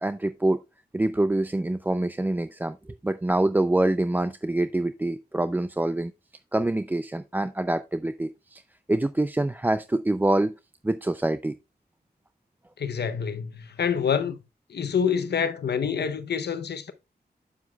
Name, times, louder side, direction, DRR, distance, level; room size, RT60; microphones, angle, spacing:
voice 1, 0.0-0.6 0.9-6.1 6.5-8.6 8.9-10.5 10.8-11.5, right 1 dB, 10° right, 0.3 m, -25 dB
voice 2, 12.8-14.4 14.7-16.9, left 7 dB, 85° left, 0.7 m, -27 dB
8.0 x 7.1 x 2.2 m
wide cardioid pair, 70°, 17 cm